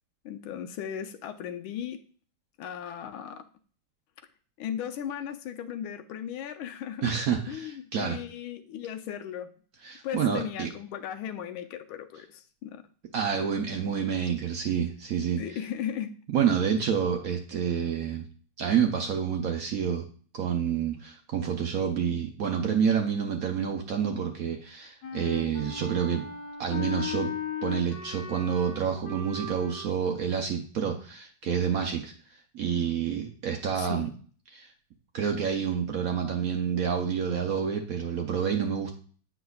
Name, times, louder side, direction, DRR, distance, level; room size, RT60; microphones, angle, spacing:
voice 1, 0.2-2.1 2.6-3.5 4.6-7.1 7.5-9.5 10.0-12.9 15.4-16.2 33.8-34.1, left 9 dB, 80° left, 1.4 m, -37 dB
voice 2, 7.0-8.2 9.8-10.7 13.1-15.6 16.3-18.2 18.6-20.0 20.3-26.3 26.6-27.3 27.6-32.1 32.5-34.1 34.5-34.7 35.1-38.9, right 7 dB, 75° right, 0.8 m, -28 dB
Wind instrument woodwind instrument, 25.0-29.9, left 6 dB, 60° left, 1.2 m, -37 dB
8.1 x 6.0 x 2.3 m
omnidirectional pair, 2.3 m